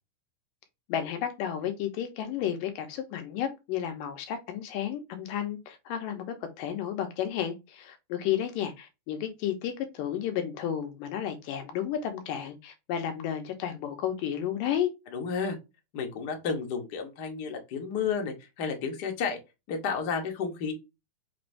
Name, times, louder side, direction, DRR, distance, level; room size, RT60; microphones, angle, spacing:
voice 1, 0.9-14.9, left 9 dB, 90° left, 2.6 m, -32 dB
voice 2, 15.1-15.6 15.9-19.4 19.7-20.7, left 5 dB, 70° left, 0.9 m, -31 dB
5.9 x 2.6 x 3.2 m
omnidirectional pair, 3.8 m